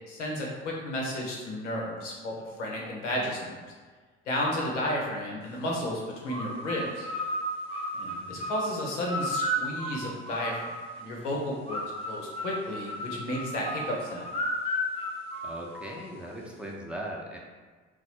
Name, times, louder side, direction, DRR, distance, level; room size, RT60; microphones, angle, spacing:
voice 1, 0.1-3.6 4.3-7.1 7.9-14.3, left 1 dB, 80° left, -2 dB, 1.0 m, -33 dB
sound 1, 6.3-11.0 11.7-16.1, equal, 15° left, 1.1 m, -34 dB
voice 2, 8.0-8.5 15.4-17.4, right 1 dB, 5° right, -3 dB, 0.9 m, -39 dB
3.9 x 2.4 x 4.5 m, 1.4 s
figure-of-eight pair, 50°, 35 cm